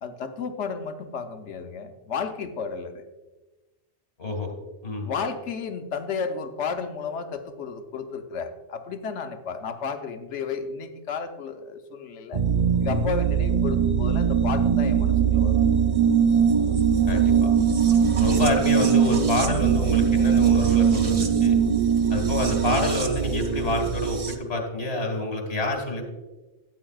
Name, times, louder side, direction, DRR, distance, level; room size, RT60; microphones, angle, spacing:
voice 1, 0.0-3.1 5.0-12.4 12.8-15.6, left 5 dB, 85° left, 7 dB, 1.1 m, -33 dB
voice 2, 4.2-4.5 4.8-5.1 17.1-17.5 18.1-21.6 22.1-26.1, left 2 dB, 65° left, 3 dB, 1.9 m, -27 dB
sound 1, 12.3-24.3, right 7 dB, 40° right, 0.6 m, -21 dB
13.5 x 8.4 x 2.3 m, 1.1 s
omnidirectional pair, 1.2 m